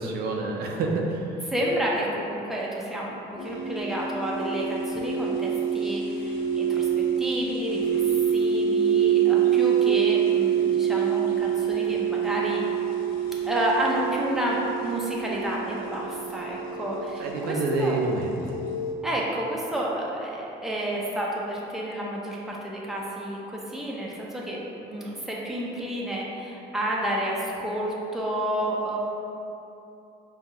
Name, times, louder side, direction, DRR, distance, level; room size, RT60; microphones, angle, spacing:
voice 1, 0.0-1.3 17.2-18.4, right 3 dB, 65° right, 0 dB, 0.5 m, -27 dB
voice 2, 1.5-6.9 7.2-12.7 13.5-18.0 19.0-29.0, right 1 dB, ahead, -4 dB, 0.6 m, -30 dB
sound 1, 3.4-18.9, right 8 dB, 60° left, 0.5 m, -26 dB
5.3 x 2.3 x 2.8 m, 2.9 s
cardioid pair, 110°, 17 cm